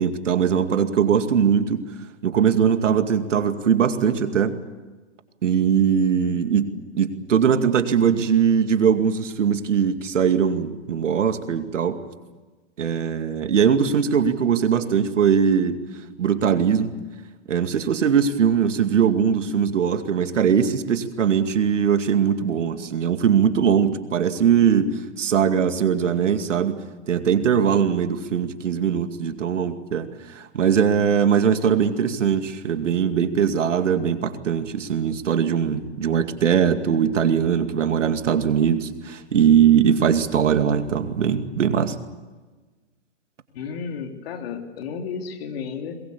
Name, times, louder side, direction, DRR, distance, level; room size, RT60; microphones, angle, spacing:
voice 1, 0.0-1.8 2.2-4.6 5.4-12.0 12.8-15.8 16.2-17.0 17.5-42.0, right 7 dB, 85° right, 8 dB, 2.3 m, -21 dB
voice 2, 43.5-46.0, left 6 dB, 55° left, 5 dB, 3.5 m, -32 dB
23.5 x 21.5 x 8.3 m, 1.3 s
hypercardioid pair, 140°, 36 cm